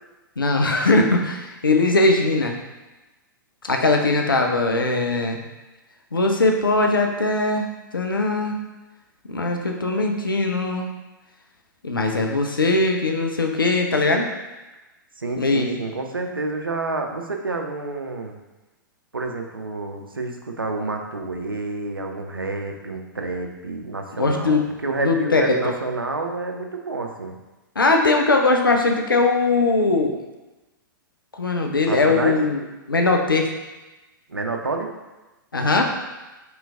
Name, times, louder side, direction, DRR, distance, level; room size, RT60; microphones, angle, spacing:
voice 1, 0.4-2.6 3.6-5.4 6.1-8.6 9.3-10.9 11.8-14.3 15.4-15.8 24.2-24.6 25.0-25.7 27.8-30.1 31.3-32.6 32.9-33.5 35.5-35.8, left 3 dB, 80° left, 3 dB, 0.5 m, -20 dB
voice 2, 15.2-18.4 19.1-27.4 31.9-32.4 34.3-34.9, right 3 dB, 85° right, 3 dB, 0.5 m, -29 dB
3.1 x 3.0 x 3.6 m, 1.1 s
figure-of-eight pair, 105°, 11 cm